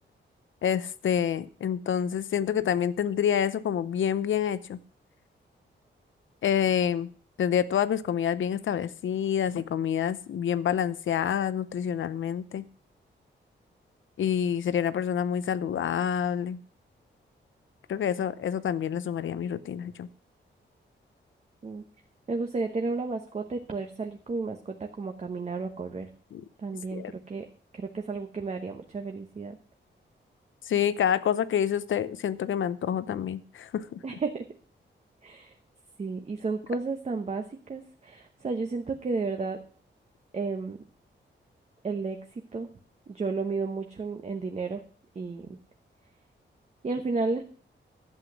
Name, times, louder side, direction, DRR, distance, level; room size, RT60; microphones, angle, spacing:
voice 1, 0.6-4.8 6.4-7.1 7.4-12.6 14.2-16.6 17.9-20.1 26.3-26.4 26.9-27.1 30.7-34.0, left 9 dB, 85° left, 16 dB, 0.7 m, -27 dB
voice 2, 22.3-26.1 26.6-27.5 27.7-29.6 34.0-34.5 35.2-35.5 36.0-39.6 40.3-40.8 41.8-42.7 43.1-44.8 45.1-45.6 46.8-47.4, right 4 dB, 35° right, 5 dB, 1.0 m, -32 dB
11.5 x 8.1 x 6.2 m, 0.43 s
wide cardioid pair, 150°, 20 cm